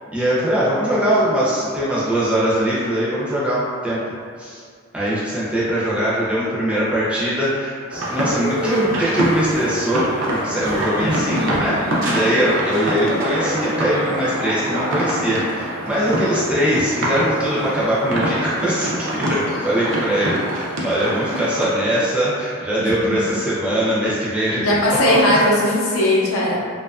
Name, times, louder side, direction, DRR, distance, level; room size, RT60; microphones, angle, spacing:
voice 1, 0.1-4.0 4.4-4.6 4.9-10.0 10.3-24.8 25.1-25.2, equal, 5° right, -9 dB, 0.5 m, -21 dB
sound 1, 7.9-21.6, equal, 60° right, 0.4 m, -25 dB
voice 2, 22.8-23.2 24.6-26.6, left 1 dB, 85° left, -4 dB, 0.6 m, -19 dB
2.6 x 2.4 x 2.2 m, 2.2 s
head